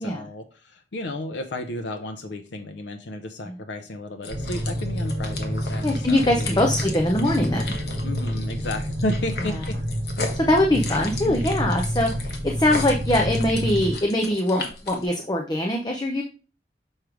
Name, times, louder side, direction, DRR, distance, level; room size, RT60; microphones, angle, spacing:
voice 1, 0.0-6.7 8.0-9.8 11.2-11.4, left 1 dB, 80° left, 6 dB, 0.6 m, -33 dB
sound 1, 4.2-15.1, left 3 dB, 60° left, 1.2 m, -36 dB
sound 2, 4.3-14.0, equal, 60° right, 1.4 m, -28 dB
voice 2, 5.8-7.7 10.3-16.2, left 1 dB, 20° left, 2 dB, 0.6 m, -22 dB
6.4 x 3.1 x 4.9 m, 0.36 s
head